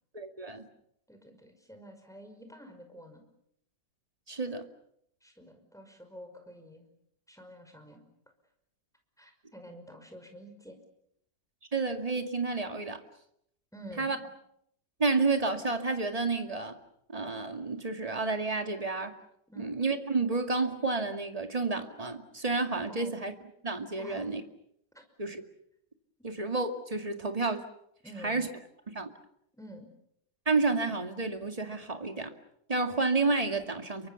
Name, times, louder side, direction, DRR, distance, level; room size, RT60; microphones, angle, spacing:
voice 1, 0.1-0.7 4.3-4.7 11.7-13.0 14.0-14.2 15.0-16.8 17.1-19.2 19.6-23.3 23.6-24.4 25.2-25.4 26.2-27.7 28.2-28.5 28.9-29.1 30.5-32.3 32.7-34.1, right 3 dB, 20° right, 6 dB, 2.2 m, -30 dB
voice 2, 1.1-3.2 5.2-6.9 7.3-8.0 9.2-10.8 13.7-14.3 19.5-19.7 22.9-23.2 24.0-24.3 24.9-25.0 28.0-28.4 29.5-29.9, equal, ahead, 5 dB, 5.5 m, -49 dB
29.0 x 24.0 x 7.1 m, 0.74 s
omnidirectional pair, 2.0 m